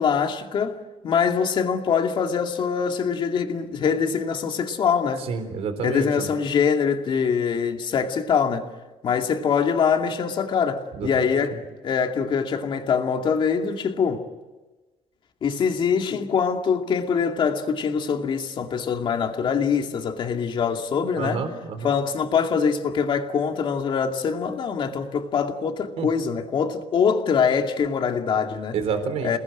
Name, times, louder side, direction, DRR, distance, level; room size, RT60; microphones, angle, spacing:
voice 1, 0.0-5.3 5.8-8.7 9.0-14.2 15.4-21.5 21.8-28.8 29.2-29.4, left 6 dB, 45° left, 2.5 m, -24 dB
voice 2, 5.3-6.1 11.0-11.1 21.2-21.9 26.0-26.1 28.7-29.4, right 5 dB, 65° right, 4.0 m, -28 dB
28.5 x 20.0 x 9.0 m
cardioid pair, 145°, 11 cm